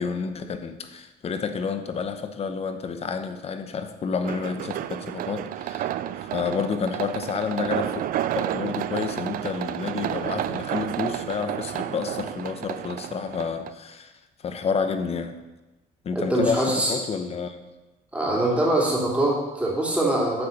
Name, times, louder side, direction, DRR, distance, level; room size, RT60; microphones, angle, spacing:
voice 1, 0.0-8.0 8.3-14.1 14.4-15.4 16.0-17.6, left 5 dB, 40° left, 8 dB, 0.8 m, -30 dB
sound 1, 4.2-13.7, right 12 dB, 55° right, 0.4 m, -31 dB
voice 2, 16.1-16.9 18.1-20.5, right 1 dB, 10° right, -4 dB, 2.7 m, -23 dB
8.8 x 4.2 x 6.5 m, 1.1 s
cardioid pair, 110°, 17 cm